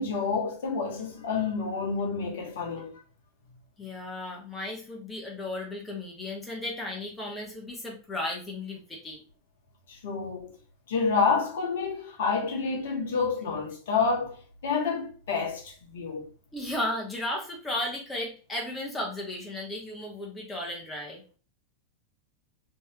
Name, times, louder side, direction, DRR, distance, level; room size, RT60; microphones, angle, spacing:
voice 1, 0.0-3.0 9.9-10.6 10.9-16.3, left 5 dB, 55° left, 1.2 m, -29 dB
voice 2, 3.8-9.2 16.5-21.2, left 1 dB, 10° left, 1.1 m, -35 dB
3.4 x 3.1 x 2.9 m
figure-of-eight pair, 90°, 0 cm